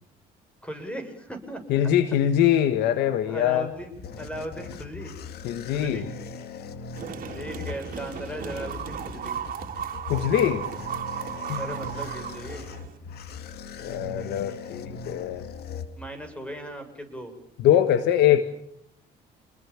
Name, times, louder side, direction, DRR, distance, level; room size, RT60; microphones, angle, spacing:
voice 1, 0.6-1.6 3.0-5.1 5.7-6.1 7.3-9.3 11.6-12.6 16.0-17.3, right 1 dB, 5° left, 8 dB, 7.4 m, -37 dB
voice 2, 1.7-3.7 5.4-6.0 10.1-10.7 11.5-11.6 13.8-15.4 17.6-18.4, left 10 dB, 85° left, 10 dB, 1.6 m, -22 dB
sound 1, 3.6-16.4, left 5 dB, 70° left, 2.5 m, -40 dB
sound 2, 7.0-13.0, right 8 dB, 55° right, 3.7 m, -35 dB
29.5 x 21.0 x 7.4 m, 0.72 s
cardioid pair, 110°, 17 cm